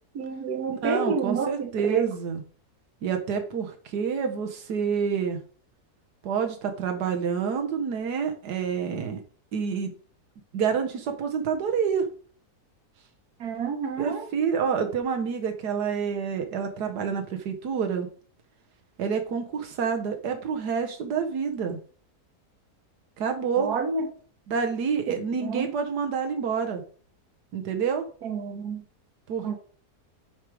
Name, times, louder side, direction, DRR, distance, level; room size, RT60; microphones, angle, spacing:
voice 1, 0.1-2.1 13.4-14.3 23.6-24.1 25.1-25.2 25.4-25.7 28.2-28.8 29.4-29.6, right 5 dB, 70° right, 6 dB, 1.8 m, -29 dB
voice 2, 0.7-2.4 3.0-5.4 6.2-9.2 9.5-9.9 10.5-12.1 14.0-18.1 19.0-21.8 23.2-23.7 24.5-26.8 27.5-28.0 29.3-29.6, right 6 dB, 90° right, 4 dB, 1.6 m, -28 dB
9.0 x 4.8 x 4.8 m, 0.44 s
omnidirectional pair, 1.7 m